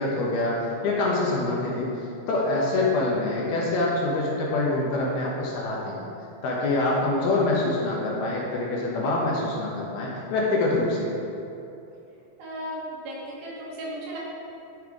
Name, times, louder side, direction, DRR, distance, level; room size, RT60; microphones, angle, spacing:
voice 1, 0.0-1.9 2.3-6.1 6.4-11.2, left 2 dB, 70° left, -4 dB, 2.7 m, -25 dB
voice 2, 12.4-14.2, equal, 65° right, -6 dB, 3.0 m, -35 dB
11.5 x 5.6 x 4.7 m, 2.8 s
omnidirectional pair, 5.1 m